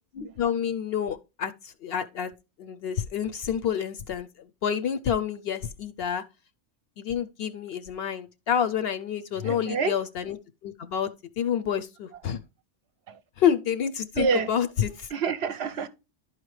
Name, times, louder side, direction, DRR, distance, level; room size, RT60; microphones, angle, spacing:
voice 1, 0.1-2.3 2.6-6.2 7.0-10.4 10.6-11.1 11.4-12.4 13.4-15.1, left 8 dB, 65° left, 0.7 m, -28 dB
voice 2, 9.4-9.9 14.2-14.5 15.1-15.9, right 5 dB, 65° right, 0.8 m, -27 dB
11.5 x 4.9 x 3.1 m
omnidirectional pair, 1.3 m